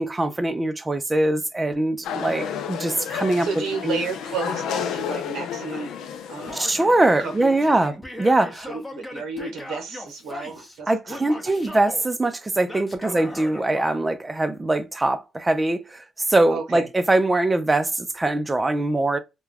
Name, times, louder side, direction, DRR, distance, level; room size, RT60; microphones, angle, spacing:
voice 1, 0.0-3.5 3.8-4.0 6.5-8.7 10.9-19.2, right 2 dB, 20° right, 0.4 m, -22 dB
sound 1, 2.0-7.9, left 8 dB, 85° left, 0.4 m, -32 dB
voice 2, 2.1-2.6 3.4-5.9 6.3-6.6 7.2-7.8 8.6-11.8 13.0-13.3 16.5-16.9, right 4 dB, 90° right, 0.8 m, -33 dB
Male speech man speaking / Yell, 6.5-7.1 7.5-10.8 11.1-12.0 12.7-14.0, left 1 dB, 15° left, 0.7 m, -38 dB
2.3 x 2.2 x 3.3 m
cardioid pair, 90°, 0 cm